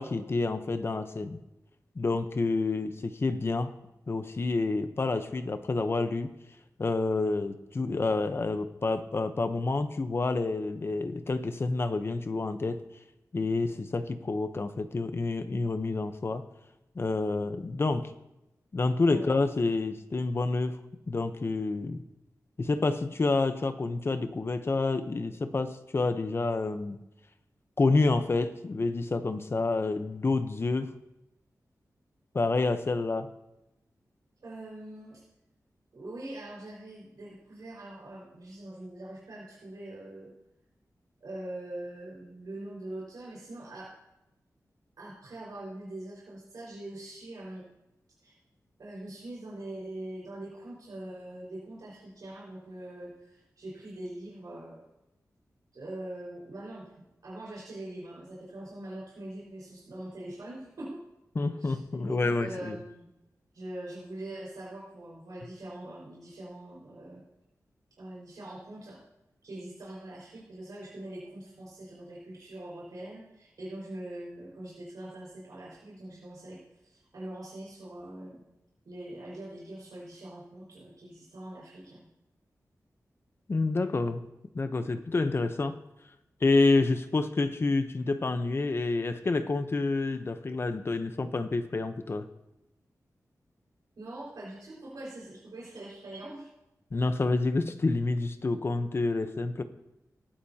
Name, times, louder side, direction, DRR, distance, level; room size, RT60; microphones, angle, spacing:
voice 1, 0.0-1.4 2.0-3.7 4.1-6.3 6.8-12.8 13.3-16.4 16.9-18.1 18.7-20.8 21.1-22.0 22.6-27.0 27.8-30.9 32.3-33.3 61.3-62.8 83.5-84.2 84.5-85.8 86.4-92.3 96.9-99.6, left 3 dB, 40° left, 9 dB, 0.8 m, -28 dB
voice 2, 19.0-19.3 34.4-35.2 35.9-40.3 41.2-43.9 45.0-47.6 48.2-48.3 48.8-54.8 55.7-56.9 57.2-61.0 61.4-61.8 62.1-63.1 63.5-67.2 68.0-69.0 69.4-78.4 78.8-82.0 94.0-96.5, right 1 dB, 80° right, -7 dB, 5.0 m, -43 dB
18.5 x 12.0 x 2.9 m, 0.90 s
wide cardioid pair, 135°, 6 cm